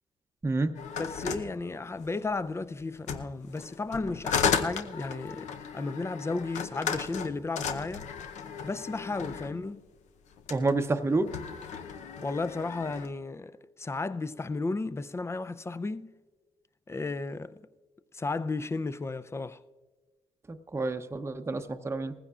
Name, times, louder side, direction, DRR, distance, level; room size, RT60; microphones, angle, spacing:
voice 1, 0.4-0.7 9.2-9.3 10.5-11.3 20.5-22.1, right 3 dB, 20° right, 0.7 m, -29 dB
sound 1, 0.7-2.3 3.0-9.6 10.3-10.8 11.1-13.1, left 7 dB, 75° left, 0.7 m, -34 dB
voice 2, 1.0-8.1 8.6-9.8 12.2-16.1 16.9-17.6 18.1-19.6, left 3 dB, 20° left, 0.5 m, -34 dB
19.5 x 15.5 x 2.4 m
supercardioid pair, 70°, 12 cm